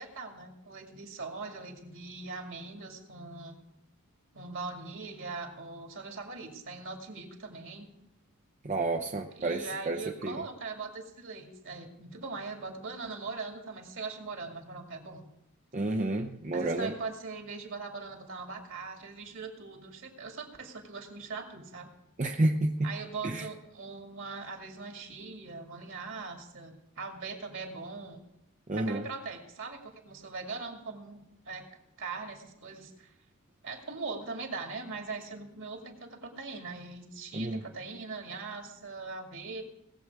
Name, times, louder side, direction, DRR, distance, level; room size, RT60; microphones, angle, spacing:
voice 1, 0.0-3.6 4.3-7.9 9.3-15.3 16.5-21.9 22.8-28.2 28.8-31.2 31.5-31.7 32.0-33.1 33.6-39.6, right 4 dB, 60° right, 3 dB, 2.3 m, -41 dB
voice 2, 8.6-10.4 15.7-16.9 22.2-22.9 23.2-23.5 28.7-29.0 37.3-37.6, right 2 dB, 35° right, 2 dB, 0.7 m, -30 dB
19.0 x 7.8 x 4.8 m, 0.81 s
head